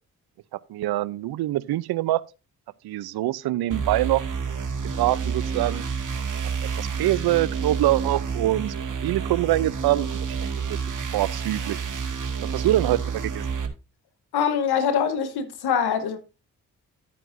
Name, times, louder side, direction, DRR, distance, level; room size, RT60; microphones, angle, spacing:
voice 1, 0.7-2.2 2.8-4.2 4.9-5.8 6.8-8.7 9.0-10.3 11.1-11.8 12.5-13.5, right 15 dB, 70° right, 0.6 m, -24 dB
sound 1, 3.7-13.7, right 6 dB, 50° right, 2.1 m, -29 dB
voice 2, 14.3-16.2, left 7 dB, 75° left, 1.2 m, -23 dB
11.5 x 9.0 x 2.6 m
hypercardioid pair, 40°, 39 cm